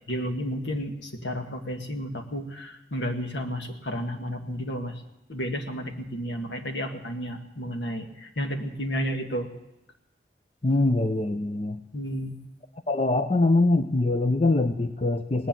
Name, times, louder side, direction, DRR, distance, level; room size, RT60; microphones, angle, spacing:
voice 1, 0.1-4.9 5.3-9.5 11.9-12.3, equal, 85° left, 4 dB, 1.8 m, -32 dB
voice 2, 10.6-11.8 12.9-15.5, left 2 dB, 35° left, 9 dB, 0.6 m, -23 dB
18.0 x 10.5 x 7.4 m, 0.90 s
head